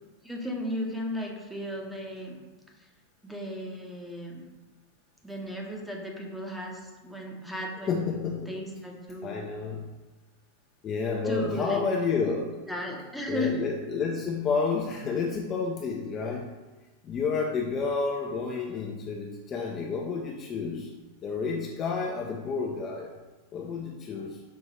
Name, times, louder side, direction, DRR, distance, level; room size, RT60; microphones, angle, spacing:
voice 1, 0.2-2.4 2.8-2.9 3.2-4.4 5.2-9.4 11.2-11.8 12.7-13.5, left 1 dB, ahead, -1 dB, 0.8 m, -35 dB
voice 2, 7.9-8.5 9.2-9.8 10.8-12.6 13.3-16.5 17.0-20.9 21.2-23.2 23.5-24.4, left 5 dB, 30° left, 0 dB, 0.4 m, -30 dB
5.4 x 2.6 x 3.1 m, 1.2 s
figure-of-eight pair, 90°, 0 cm